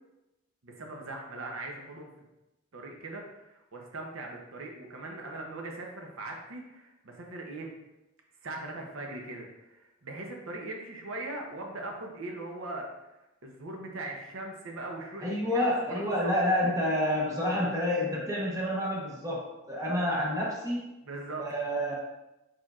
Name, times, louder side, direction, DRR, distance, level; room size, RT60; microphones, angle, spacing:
voice 1, 0.6-2.1 2.7-7.7 8.4-12.9 13.4-16.3 21.0-21.5, right 2 dB, 80° right, 1 dB, 0.7 m, -40 dB
voice 2, 15.2-20.9 21.4-21.9, left 1 dB, 15° right, -3 dB, 0.8 m, -29 dB
4.4 x 4.4 x 2.4 m, 0.96 s
head